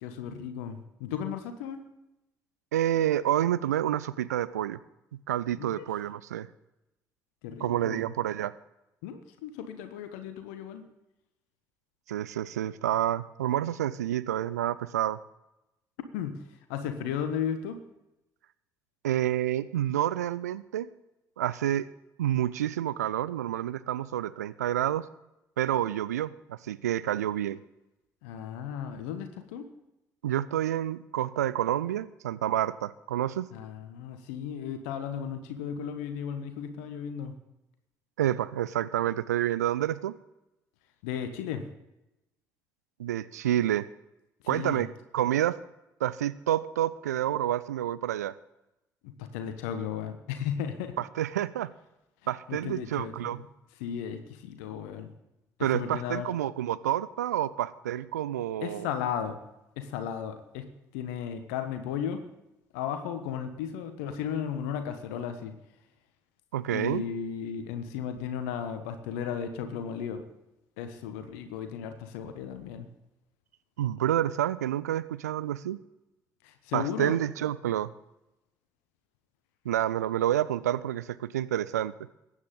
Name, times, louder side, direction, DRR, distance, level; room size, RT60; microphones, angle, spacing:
voice 1, 0.0-1.8 5.6-5.9 7.4-8.0 9.0-10.8 16.1-16.4 16.7-17.8 28.2-29.7 33.5-37.3 41.0-41.6 44.5-44.8 49.0-51.0 52.5-53.5 53.8-55.1 55.7-56.3 58.6-59.4 59.8-60.7 60.9-62.2 62.7-65.5 66.7-70.2 70.8-72.9 76.4-77.2, left 8 dB, 70° left, 8 dB, 1.2 m, -35 dB
voice 2, 2.7-4.8 5.3-6.5 7.6-8.5 12.1-15.2 19.0-20.9 21.4-21.9 22.2-25.1 25.6-27.6 30.2-33.5 38.2-40.1 43.0-43.9 44.5-44.9 45.1-45.6 46.0-48.4 51.0-51.7 52.3-53.4 55.6-58.9 66.5-67.0 73.8-75.8 76.7-77.9 79.6-81.9, right 12 dB, 75° right, 17 dB, 0.4 m, -28 dB
22.0 x 9.7 x 3.8 m, 0.92 s
figure-of-eight pair, 45°, 9 cm